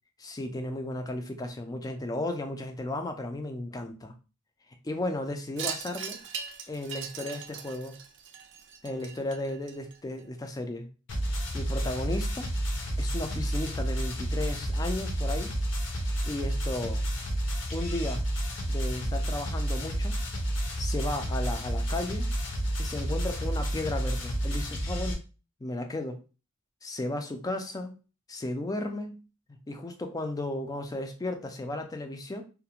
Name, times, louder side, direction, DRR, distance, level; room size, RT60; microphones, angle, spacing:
voice 1, 0.2-4.1 4.8-6.2 6.7-8.0 8.8-10.9 11.5-12.5 13.0-15.5 16.2-17.0 17.7-18.2 18.7-20.2 20.8-22.3 22.8-25.2 25.6-26.2 26.8-27.9 28.3-29.2 29.7-32.4, left 2 dB, 20° left, 5 dB, 0.3 m, -34 dB
Wind chime, 5.6-10.2, right 7 dB, 60° right, 0.4 m, -40 dB
sound 1, 11.1-25.1, right 1 dB, 60° left, 0.6 m, -30 dB
2.4 x 2.1 x 2.8 m, 0.33 s
head